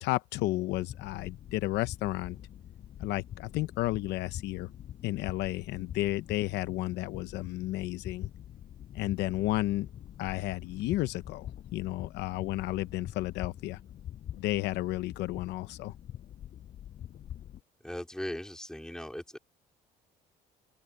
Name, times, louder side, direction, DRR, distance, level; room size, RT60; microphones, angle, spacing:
voice 1, 0.0-2.4 3.0-4.7 5.0-8.3 8.9-9.9 10.2-13.8 14.3-15.9, left 17 dB, 85° left, 0.7 m, -32 dB
sound 1, 0.7-17.6, left 11 dB, 60° left, 6.3 m, -45 dB
voice 2, 17.8-19.4, left 1 dB, 5° left, 3.9 m, -38 dB
open air
cardioid pair, 110°, 17 cm